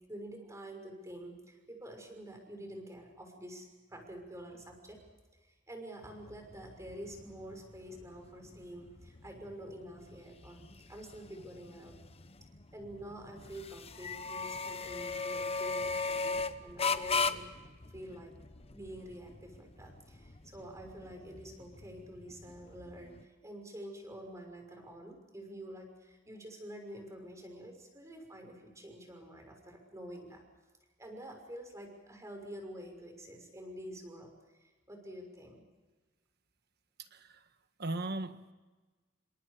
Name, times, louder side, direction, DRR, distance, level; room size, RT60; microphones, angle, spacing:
voice 1, 0.1-5.0 5.4-10.6 10.9-11.9 12.7-17.4 17.9-18.3 18.7-30.4 31.0-34.3 34.6-35.6, right 1 dB, 15° right, 3 dB, 6.1 m, -48 dB
sound 1, 6.0-23.2, left 4 dB, 30° left, 1.0 m, -39 dB
voice 2, 37.0-37.4 37.8-38.5, right 2 dB, 55° right, 9 dB, 1.5 m, -38 dB
28.5 x 26.0 x 5.1 m, 1.3 s
head